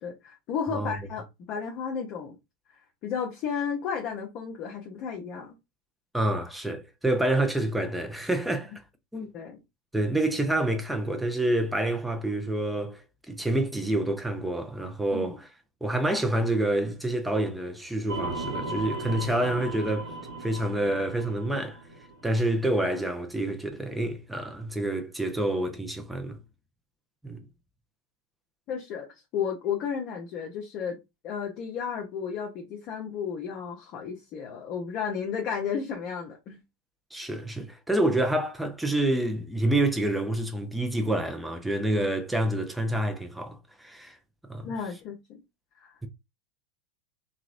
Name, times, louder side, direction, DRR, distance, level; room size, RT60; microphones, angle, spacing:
voice 1, 0.0-2.4 2.7-5.6 9.3-9.6 15.1-15.4 28.7-31.0 31.2-36.6 44.6-45.4 45.8-46.1, left 7 dB, 45° left, 0.7 m, -33 dB
voice 2, 6.1-8.7 9.1-9.3 9.9-13.0 13.3-15.5 15.8-20.1 20.4-21.8 22.2-26.4 27.2-27.4 37.1-44.2 44.5-44.7, right 1 dB, 5° right, 0.7 m, -27 dB
sound 1, 18.1-22.5, right 2 dB, 60° right, 0.9 m, -36 dB
3.0 x 2.4 x 2.5 m
figure-of-eight pair, 90°, 0 cm